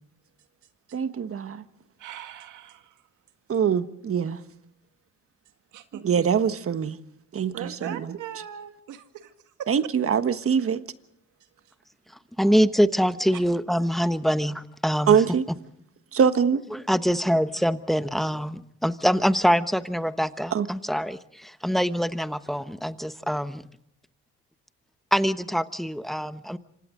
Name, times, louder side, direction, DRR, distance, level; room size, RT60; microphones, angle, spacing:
voice 1, 0.9-1.6 3.5-4.4 6.0-7.0 7.3-8.2 9.7-10.8 15.1-15.4 16.1-16.6 20.5-20.7, right 7 dB, 50° right, 1.4 m, -23 dB
voice 2, 2.0-2.9 5.7-6.0 7.5-9.3 9.6-9.7, right 10 dB, 85° right, 2.0 m, -39 dB
voice 3, 12.4-15.2 16.7-23.6 25.1-26.6, equal, ahead, 1.1 m, -24 dB
27.0 x 25.5 x 3.8 m
cardioid pair, 90°, 30 cm